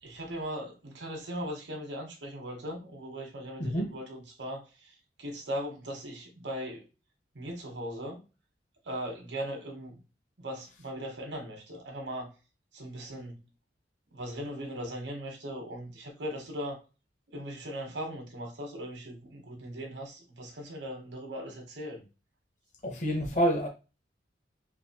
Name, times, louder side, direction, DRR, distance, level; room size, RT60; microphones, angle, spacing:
voice 1, 0.0-6.9 7.3-8.2 8.8-10.0 10.4-12.3 12.7-13.4 14.1-16.8 17.3-22.0, equal, 80° right, 1.0 m, -39 dB
voice 2, 3.6-3.9 22.8-23.7, equal, 45° left, 0.8 m, -28 dB
3.9 x 2.5 x 2.8 m
head